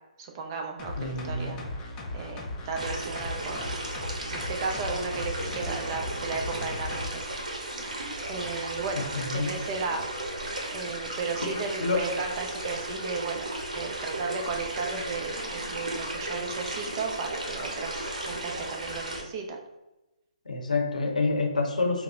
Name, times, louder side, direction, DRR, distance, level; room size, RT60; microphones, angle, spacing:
voice 1, 0.2-1.6 2.1-3.8 4.3-7.2 8.2-9.0 9.3-10.1 10.7-19.6, right 4 dB, 35° right, 2 dB, 0.5 m, -34 dB
sound 1, 0.8-7.1 7.5-7.6, left 2 dB, 20° left, 0.4 m, -37 dB
voice 2, 1.0-1.7 9.2-9.6 11.4-12.1 20.5-22.0, left 3 dB, 80° left, 1 dB, 0.7 m, -28 dB
sound 2, 2.8-19.2, right 1 dB, 75° right, 0.8 m, -35 dB
2.8 x 2.0 x 3.5 m, 0.99 s
figure-of-eight pair, 135°, 4 cm